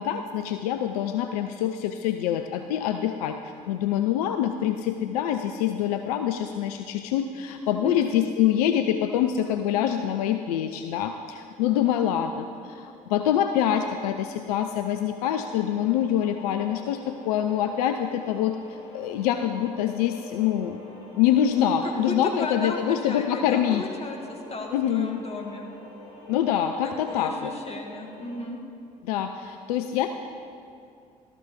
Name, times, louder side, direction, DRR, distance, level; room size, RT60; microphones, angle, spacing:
voice 1, 0.0-3.4 3.7-20.8 21.2-23.9 24.7-25.2 26.3-27.5 29.0-30.1, left 10 dB, 70° left, 7 dB, 0.4 m, -25 dB
voice 2, 7.6-8.1 21.8-25.6 27.1-28.6, left 2 dB, 30° left, 2 dB, 1.7 m, -35 dB
sound 1, 15.3-28.4, left 1 dB, 50° left, 2.2 m, -46 dB
13.0 x 5.9 x 6.9 m, 2.5 s
figure-of-eight pair, 50°, 20 cm